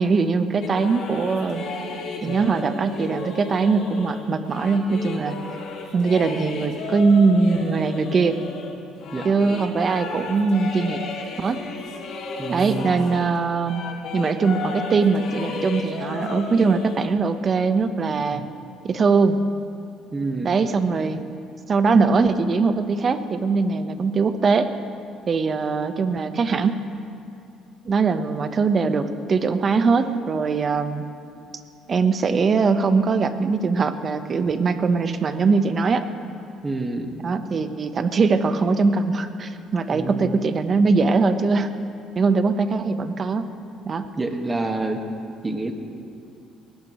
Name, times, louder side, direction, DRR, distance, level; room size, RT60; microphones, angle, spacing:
voice 1, 0.0-1.6 2.2-5.3 5.9-8.4 9.2-11.0 11.4-11.6 12.5-13.8 14.1-18.4 18.8-19.4 20.4-21.2 21.7-24.7 25.3-26.8 27.8-31.0 31.9-36.0 37.2-41.7 42.1-43.5 43.9-44.1, right 4 dB, 40° right, 9 dB, 1.0 m, -21 dB
sound 1, 0.6-13.4 13.7-17.1, left 4 dB, 70° left, 2.3 m, -34 dB
voice 2, 12.4-13.1 18.3-18.5 20.1-20.5 36.6-37.1 39.9-40.4 44.2-45.0 45.4-45.7, right 2 dB, 20° right, 4 dB, 1.7 m, -28 dB
21.0 x 17.0 x 3.1 m, 2.6 s
supercardioid pair, 85°, 0 cm